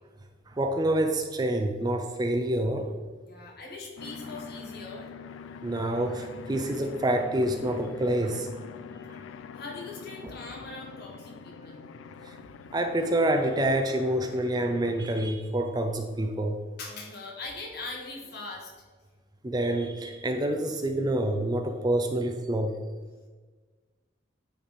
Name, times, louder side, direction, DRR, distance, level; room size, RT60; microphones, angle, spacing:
voice 1, 0.5-2.9 5.6-8.6 12.3-12.4 12.7-16.6 19.4-22.8, right 1 dB, 20° right, 5 dB, 0.4 m, -27 dB
voice 2, 3.2-5.1 9.5-11.9 14.2-14.4 16.8-18.7, left 3 dB, 55° left, -1 dB, 1.5 m, -41 dB
sound 1, 4.0-15.3, left 5 dB, 85° left, 0.3 m, -44 dB
9.2 x 3.4 x 4.1 m, 1.4 s
head